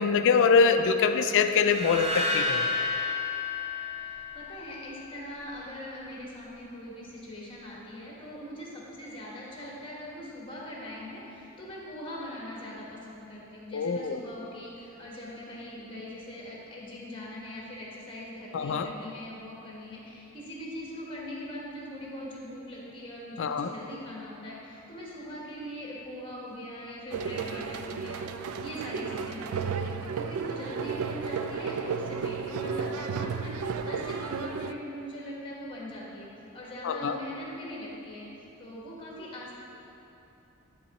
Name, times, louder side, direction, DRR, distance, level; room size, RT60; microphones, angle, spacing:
voice 1, 0.0-2.7 13.7-14.2 18.5-18.9 23.4-23.7 36.8-37.2, left 5 dB, 60° left, 8 dB, 0.4 m, -24 dB
sound 1, 1.6-4.8, left 3 dB, 30° right, 0.7 m, -31 dB
voice 2, 3.9-36.3 36.5-38.3 38.6-39.5, left 1 dB, 25° left, -4 dB, 1.4 m, -41 dB
sound 2, 27.1-34.7, right 5 dB, 80° right, 0.3 m, -33 dB
10.5 x 3.8 x 4.1 m, 2.9 s
head